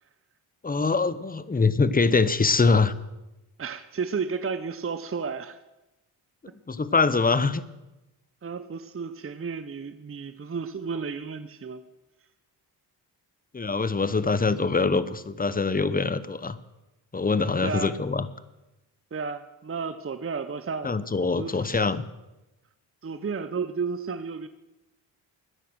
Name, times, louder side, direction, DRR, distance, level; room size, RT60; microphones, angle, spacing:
voice 1, 0.6-3.0 6.7-7.6 13.5-16.6 17.1-18.2 20.8-22.0, left 4 dB, 20° left, 15 dB, 0.9 m, -23 dB
voice 2, 3.6-5.6 6.5-6.6 8.4-11.8 17.6-18.0 19.1-21.0 21.4-21.9 23.0-24.5, right 5 dB, 25° right, 11 dB, 0.8 m, -32 dB
14.0 x 9.9 x 6.3 m, 0.99 s
supercardioid pair, 50°, 49 cm